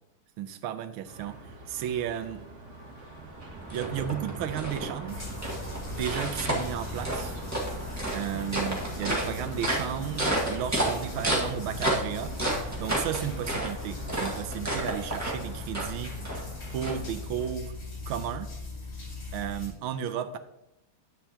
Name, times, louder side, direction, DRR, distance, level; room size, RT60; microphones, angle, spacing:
voice 1, 0.4-1.4 1.7-2.4 3.7-5.3 5.9-7.4 8.1-12.4 12.8-16.2 16.7-17.7 18.1-18.5 19.3-20.4, right 9 dB, 80° right, 10 dB, 1.5 m, -33 dB
sound 1, 1.0-15.7, right 2 dB, 40° right, 1.5 m, -45 dB
sound 2, 3.0-17.5, right 1 dB, 10° right, 1.3 m, -32 dB
sound 3, 5.1-19.7, left 3 dB, 60° left, 3.0 m, -40 dB
10.0 x 7.9 x 2.9 m, 0.87 s
omnidirectional pair, 2.3 m